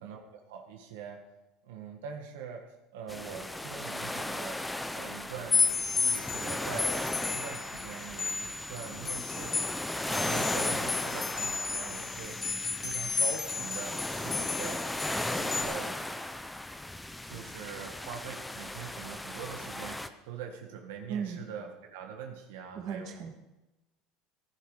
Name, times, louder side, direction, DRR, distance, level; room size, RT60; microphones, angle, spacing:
voice 1, 0.0-1.2 1.6-2.6 2.9-4.6 4.9-9.6 9.8-12.4 12.7-14.8 15.3-15.9 17.2-23.1, right 7 dB, 90° right, 3 dB, 1.8 m, -43 dB
sound 1, 3.1-20.1, left 1 dB, 5° left, 0.7 m, -37 dB
sound 2, 5.5-15.6, left 4 dB, 20° left, 1.1 m, -33 dB
voice 2, 21.1-21.4 22.8-23.3, right 7 dB, 45° right, 4 dB, 2.0 m, -36 dB
15.5 x 10.5 x 5.0 m, 0.99 s
supercardioid pair, 130°, 0 cm